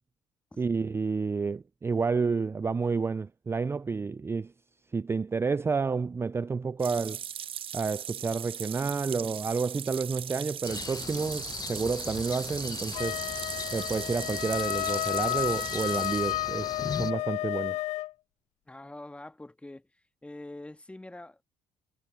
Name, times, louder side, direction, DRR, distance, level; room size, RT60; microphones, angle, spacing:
voice 1, 0.6-4.5 4.9-7.2 7.7-13.2 13.7-17.8, right 4 dB, 20° right, 0.4 m, -30 dB
sound 1, 6.8-16.3, right 9 dB, 50° right, 0.8 m, -39 dB
sound 2, 10.6-17.1, left 6 dB, 35° left, 0.8 m, -39 dB
Wind instrument woodwind instrument, 12.9-18.1, left 16 dB, 70° left, 0.4 m, -32 dB
voice 2, 18.7-19.9 20.2-21.5, left 2 dB, 10° left, 1.6 m, -45 dB
supercardioid pair, 75°, 12 cm